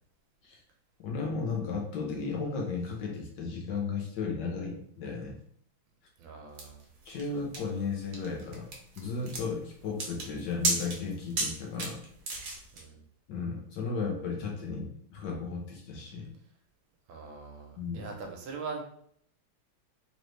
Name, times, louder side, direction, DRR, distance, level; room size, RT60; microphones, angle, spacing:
voice 1, 1.0-5.4 7.0-12.0 13.3-16.3 17.8-18.1, left 4 dB, 65° left, 0 dB, 1.3 m, -35 dB
voice 2, 6.2-6.9 12.7-13.0 17.1-18.8, right 4 dB, 75° right, 2 dB, 1.5 m, -41 dB
sound 1, 6.6-12.8, right 3 dB, 60° right, 1.3 m, -35 dB
3.9 x 3.2 x 3.1 m, 0.66 s
omnidirectional pair, 2.3 m